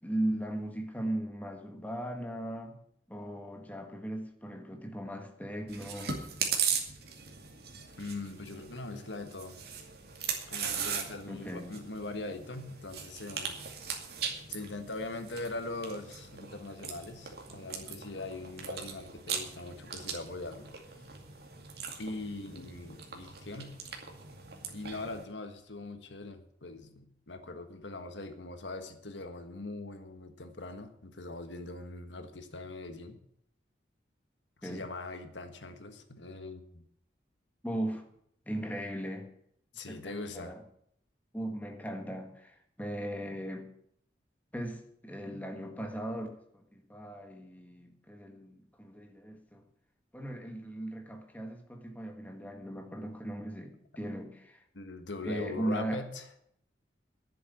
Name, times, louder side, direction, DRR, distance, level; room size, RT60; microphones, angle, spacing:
voice 1, 0.0-2.8 3.1-6.2 11.3-11.8 34.6-34.8 37.6-38.0 38.4-39.3 39.9-40.6 41.3-43.7 44.5-49.7 50.1-54.6 55.2-56.0, right 1 dB, 10° left, 4 dB, 1.6 m, -38 dB
Chewing mastication, 5.7-25.2, right 7 dB, 60° right, 2.3 m, -39 dB
voice 2, 8.0-9.6 10.5-13.6 14.5-21.0 22.0-23.8 24.7-33.2 34.6-36.8 39.7-40.6 54.7-56.2, left 2 dB, 90° left, 8 dB, 1.5 m, -41 dB
11.0 x 7.7 x 9.5 m, 0.70 s
head